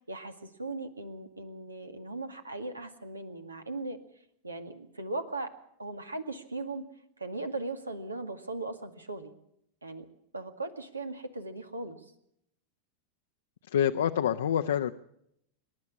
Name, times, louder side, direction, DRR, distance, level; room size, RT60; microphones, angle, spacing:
voice 1, 0.0-4.0 4.4-5.5 5.8-6.9 7.2-9.3 9.8-10.1 10.3-12.0, right 2 dB, 80° right, 8 dB, 2.0 m, -38 dB
voice 2, 13.7-14.9, left 9 dB, 65° left, 6 dB, 0.7 m, -26 dB
26.0 x 12.0 x 8.5 m, 0.74 s
figure-of-eight pair, 90°, 0 cm